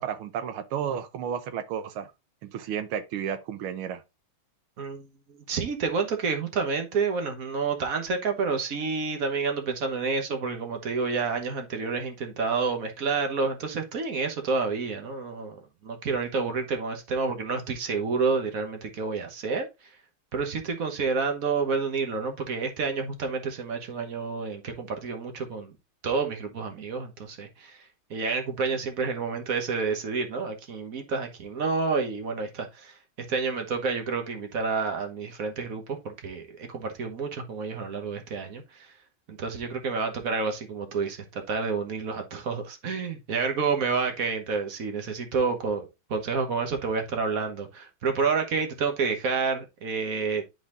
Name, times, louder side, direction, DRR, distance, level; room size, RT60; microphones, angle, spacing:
voice 1, 0.0-2.1 2.4-4.0, right 8 dB, 85° right, 1.7 m, -32 dB
voice 2, 4.8-19.7 20.3-25.7 26.0-38.9 39.3-50.4, right 4 dB, 45° right, 1.4 m, -29 dB
10.5 x 4.0 x 2.5 m
omnidirectional pair, 2.3 m